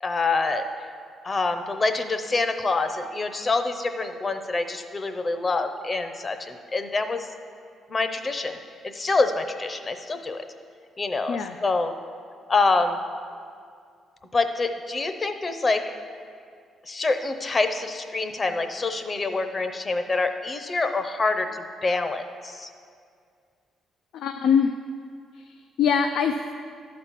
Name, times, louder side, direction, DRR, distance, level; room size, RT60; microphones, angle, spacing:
voice 1, 0.0-0.6 1.2-7.3 7.9-8.6 8.9-10.4 11.0-11.9 12.5-13.0 14.3-15.9 16.9-22.7, left 3 dB, 30° left, 8 dB, 0.7 m, -26 dB
voice 2, 24.1-24.7 25.3-26.4, left 7 dB, 75° left, 6 dB, 0.4 m, -23 dB
11.5 x 4.2 x 7.3 m, 2.2 s
cardioid pair, 90°, 0 cm